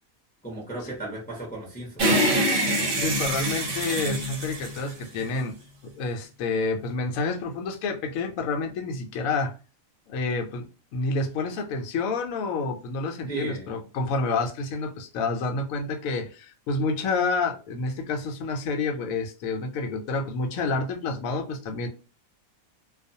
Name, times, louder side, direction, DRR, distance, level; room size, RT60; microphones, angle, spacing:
voice 1, 0.4-2.1 13.3-13.7, right 2 dB, 10° left, 0.6 m, -35 dB
sound 1, 2.0-5.5, right 1 dB, 60° right, 0.6 m, -25 dB
voice 2, 2.9-5.6 5.8-9.5 10.1-10.7 10.9-21.9, left 3 dB, 75° left, 1.0 m, -29 dB
2.4 x 2.3 x 2.6 m
omnidirectional pair, 1.5 m